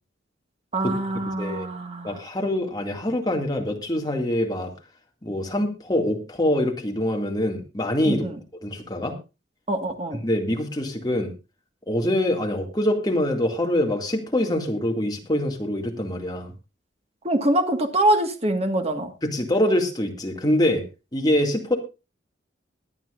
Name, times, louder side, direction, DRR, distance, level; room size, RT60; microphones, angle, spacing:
voice 1, 0.7-2.2 8.0-8.4 9.7-10.2 17.2-19.1, right 1 dB, 35° right, 6 dB, 1.7 m, -24 dB
voice 2, 1.3-1.7 2.0-4.7 5.2-8.2 8.6-9.2 10.2-11.3 11.9-16.5 19.2-20.8 21.1-21.8, left 1 dB, 20° left, 2 dB, 2.1 m, -24 dB
21.5 x 9.0 x 2.5 m, 0.28 s
head